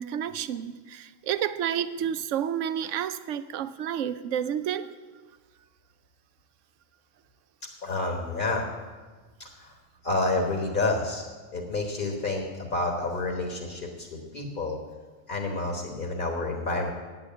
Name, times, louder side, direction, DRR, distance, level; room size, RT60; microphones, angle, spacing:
voice 1, 0.0-4.9, right 9 dB, 75° right, 13 dB, 1.0 m, -30 dB
voice 2, 7.8-8.7 9.4-9.7 10.0-11.2 11.5-14.8 15.3-16.9, left 2 dB, 40° left, 2 dB, 1.5 m, -29 dB
9.2 x 8.2 x 8.6 m, 1.4 s
omnidirectional pair, 1.3 m